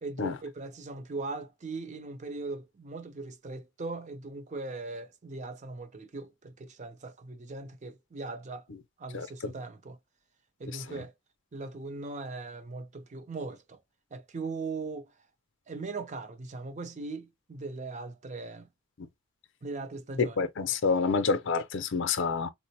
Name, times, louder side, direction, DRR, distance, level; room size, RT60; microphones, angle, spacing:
voice 1, 0.0-8.7 9.0-10.0 10.6-11.1 11.5-13.8 14.1-15.1 15.7-18.7 19.6-20.4, right 3 dB, 35° right, 0.5 m, -39 dB
voice 2, 9.1-9.5 10.9-11.0 19.0-19.1 20.2-22.5, left 5 dB, 60° left, 0.5 m, -28 dB
3.7 x 2.0 x 2.7 m
head